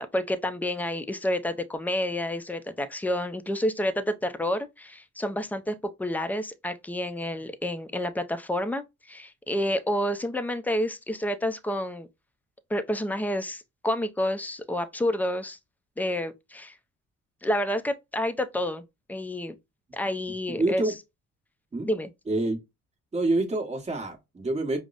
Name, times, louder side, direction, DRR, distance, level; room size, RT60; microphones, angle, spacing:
voice 1, 0.0-12.1 12.7-15.6 16.0-16.8 17.4-18.8 19.1-19.5 19.9-20.8 21.9-22.1, left 1 dB, 5° left, 0.4 m, -29 dB
voice 2, 20.5-20.9 21.7-21.9 22.3-22.6 23.1-24.8, right 2 dB, 20° right, 1.1 m, -27 dB
5.1 x 2.0 x 2.4 m
cardioid pair, 90°, 30 cm